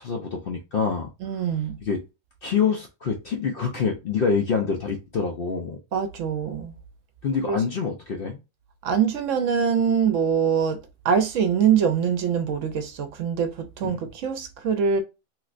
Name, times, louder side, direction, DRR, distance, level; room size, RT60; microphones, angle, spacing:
voice 1, 0.0-1.1 1.8-2.0 2.4-5.8 7.2-8.4 13.8-14.0, left 6 dB, 60° left, 0.6 m, -26 dB
voice 2, 1.2-1.8 5.9-6.7 7.5-7.6 8.8-10.8 11.0-15.0, right 7 dB, 65° right, 0.9 m, -23 dB
3.1 x 3.0 x 2.4 m
omnidirectional pair, 1.5 m